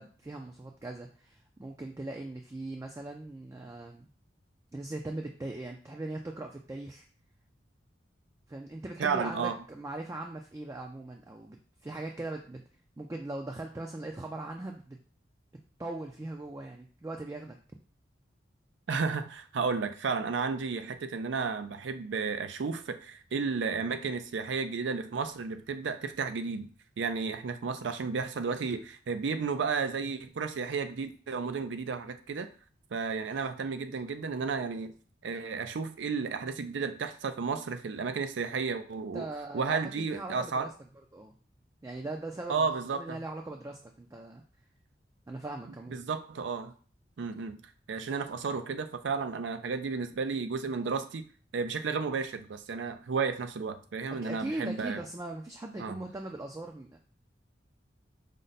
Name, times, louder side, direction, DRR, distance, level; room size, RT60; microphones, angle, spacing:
voice 1, 0.0-4.1 4.7-7.0 8.5-12.6 13.0-15.0 15.8-17.6 39.1-39.8 40.1-40.7 41.1-41.3 41.8-42.7 42.9-44.4 45.3-46.0 54.1-57.0, right 2 dB, 15° right, 2 dB, 0.3 m, -40 dB
voice 2, 9.0-9.5 18.9-26.7 27.0-32.5 32.9-34.9 35.2-39.3 39.5-40.7 42.5-43.2 45.9-46.7 47.2-47.6 47.9-51.2 51.5-55.0 55.8-56.0, right 5 dB, 90° right, 9 dB, 0.5 m, -32 dB
5.1 x 2.1 x 4.0 m, 0.42 s
head